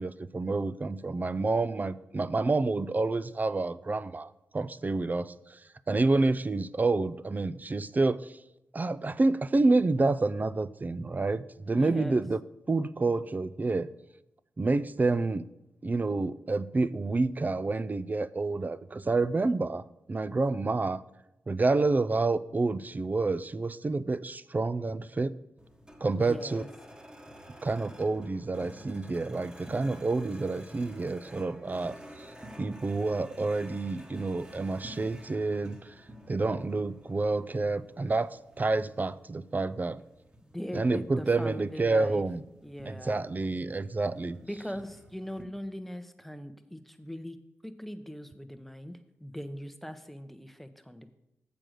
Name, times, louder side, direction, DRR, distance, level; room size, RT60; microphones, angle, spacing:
voice 1, 0.0-5.6 5.9-8.3 8.7-12.4 12.7-13.9 14.6-15.5 15.8-19.8 20.1-21.0 21.5-25.3 26.0-26.6 27.6-32.3 32.6-35.8 36.3-40.0 40.7-42.4 42.9-44.4, right 3 dB, 35° right, 16 dB, 0.4 m, -28 dB
voice 2, 11.7-12.2 26.1-26.7 40.4-42.3 42.6-43.3 44.4-47.4 47.6-51.2, equal, 5° left, 9 dB, 0.8 m, -40 dB
sound 1, 25.6-45.4, equal, 15° right, 1.2 m, -51 dB
7.4 x 5.1 x 6.3 m, 0.89 s
supercardioid pair, 45°, 5 cm